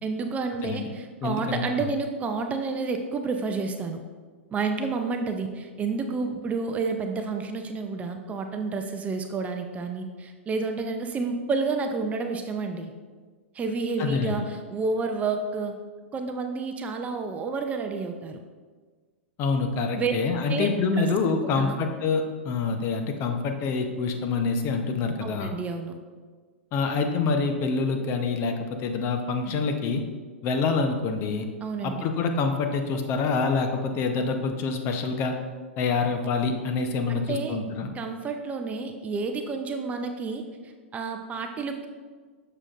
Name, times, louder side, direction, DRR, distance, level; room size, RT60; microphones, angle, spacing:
voice 1, 0.0-4.0 4.5-12.9 13.5-15.7 16.1-18.4 20.0-20.1 20.5-20.7 21.0-21.1 21.6-21.8 25.2-26.0 31.6-32.1 37.1-37.6 37.9-41.9, right 4 dB, 20° right, 5 dB, 0.5 m, -30 dB
voice 2, 1.2-1.6 14.0-14.5 19.4-25.5 26.7-30.0 30.4-31.5 31.8-35.4 35.8-37.9, left 4 dB, 35° left, 5 dB, 0.8 m, -26 dB
7.3 x 6.6 x 2.5 m, 1.5 s
hypercardioid pair, 110°, 7 cm